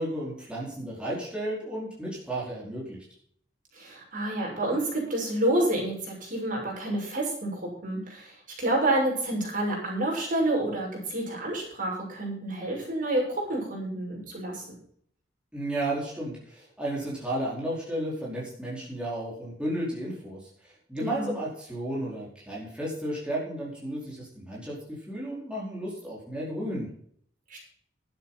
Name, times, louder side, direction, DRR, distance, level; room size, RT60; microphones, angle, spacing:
voice 1, 0.0-3.0 15.5-24.8 25.1-26.9, right 1 dB, 5° right, -6 dB, 4.6 m, -33 dB
voice 2, 3.7-14.8 21.0-21.3 27.5-27.6, right 1 dB, 50° right, -2 dB, 6.4 m, -29 dB
12.0 x 9.3 x 5.8 m, 0.63 s
head